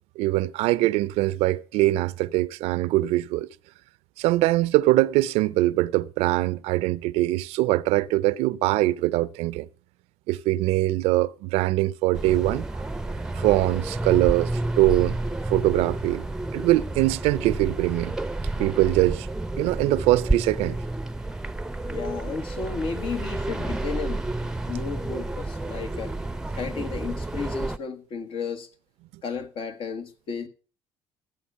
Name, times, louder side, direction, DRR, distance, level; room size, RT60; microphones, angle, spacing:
voice 1, 0.2-3.5 4.2-9.7 10.3-12.7 13.4-15.1 15.5-18.1 18.6-19.3 19.6-20.8, right 17 dB, 80° right, 0.5 m, -22 dB
sound 1, 12.1-27.8, right 2 dB, 5° right, 0.7 m, -30 dB
voice 2, 21.8-26.1 26.5-28.7 29.2-30.5, left 5 dB, 55° left, 1.6 m, -33 dB
15.5 x 8.3 x 5.6 m
supercardioid pair, 95°, 10 cm